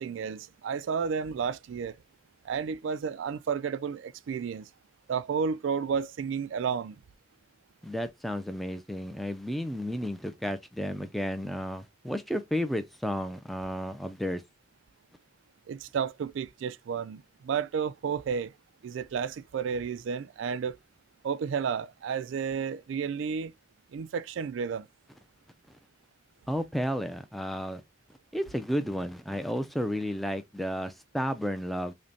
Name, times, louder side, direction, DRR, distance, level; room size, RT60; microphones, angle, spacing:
voice 1, 0.0-2.0 2.4-4.7 5.1-7.0 15.7-18.5 18.8-20.8 21.2-23.5 23.9-24.9, right 6 dB, 80° right, 0.3 m, -32 dB
voice 2, 7.8-14.4 26.5-27.8 28.3-31.9, equal, ahead, 0.4 m, -32 dB
5.1 x 2.2 x 2.7 m
head